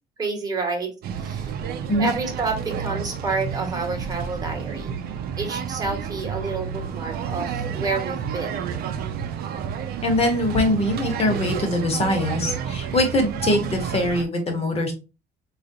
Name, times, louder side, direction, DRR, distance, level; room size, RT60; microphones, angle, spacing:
voice 1, 0.2-1.5 2.0-5.0 5.4-8.5, right 3 dB, 20° right, 3 dB, 1.1 m, -29 dB
sound 1, 1.0-14.2, right 7 dB, 65° right, 0.5 m, -30 dB
voice 2, 10.0-14.9, left 1 dB, 35° left, 4 dB, 1.1 m, -22 dB
3.7 x 2.5 x 2.7 m, 0.30 s
cardioid pair, 110°, 17 cm